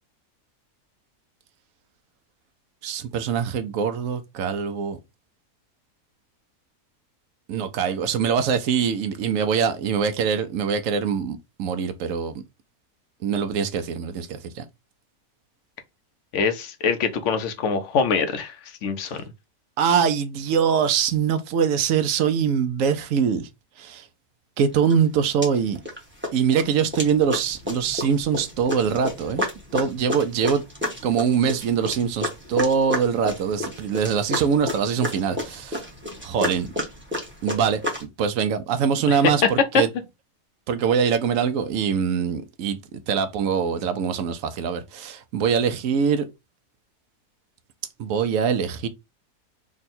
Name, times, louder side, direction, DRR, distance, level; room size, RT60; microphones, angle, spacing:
voice 1, 2.8-5.0 7.5-12.4 13.2-14.6 19.8-23.5 23.8-24.1 24.6-25.8 26.3-29.5 29.7-30.6 31.0-35.9 36.2-36.7 37.4-39.9 40.7-46.3 48.0-48.9, right 7 dB, 70° right, 0.9 m, -23 dB
voice 2, 16.3-18.6 18.8-19.2 39.1-39.2, left 5 dB, 60° left, 0.9 m, -24 dB
sound 1, 24.9-25.0 25.4-26.0 26.2-38.0, left 1 dB, 10° right, 0.8 m, -31 dB
3.5 x 2.2 x 4.1 m
omnidirectional pair, 1.6 m